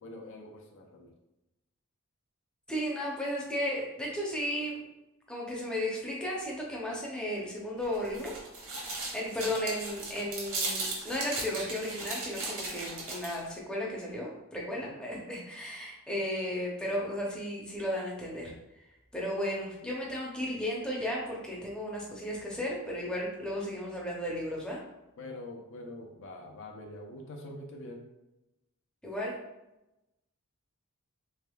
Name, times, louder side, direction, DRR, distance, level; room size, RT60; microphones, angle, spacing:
voice 1, 0.0-1.1 9.4-9.5 14.8-15.0 25.2-28.1, left 1 dB, 60° left, 1 dB, 0.5 m, -45 dB
voice 2, 2.7-4.8 5.3-8.3 9.1-18.5 19.1-24.8 29.0-29.4, equal, 5° left, -4 dB, 0.6 m, -34 dB
sound 1, 7.8-13.5, right 3 dB, 65° right, 1.0 m, -37 dB
3.4 x 3.3 x 2.3 m, 0.94 s
head